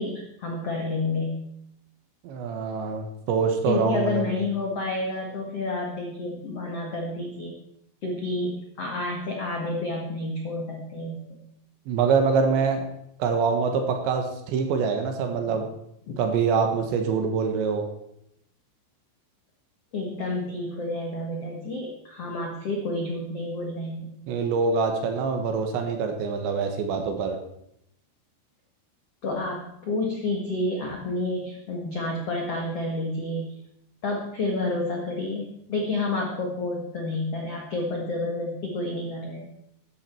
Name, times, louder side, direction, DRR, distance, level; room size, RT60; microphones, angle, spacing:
voice 1, 0.0-1.4 3.7-7.5 8.0-11.4 15.4-15.5 16.1-16.2 19.9-24.1 29.2-33.5 34.0-39.5, left 2 dB, 75° left, 0 dB, 1.4 m, -30 dB
voice 2, 2.2-4.3 11.9-12.9 13.2-15.7 16.2-17.9 24.3-27.4, right 5 dB, 70° right, 5 dB, 3.4 m, -25 dB
13.5 x 11.0 x 4.6 m, 0.77 s
omnidirectional pair, 5.8 m